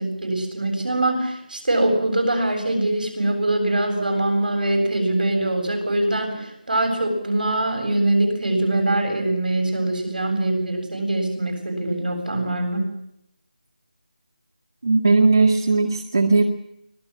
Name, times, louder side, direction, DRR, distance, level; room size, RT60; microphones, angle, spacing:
voice 1, 0.0-12.9, right 1 dB, 85° right, 4 dB, 7.7 m, -23 dB
voice 2, 14.8-16.4, right 3 dB, 40° right, 0 dB, 2.0 m, -17 dB
25.0 x 18.0 x 7.5 m, 0.78 s
figure-of-eight pair, 180°, 5 cm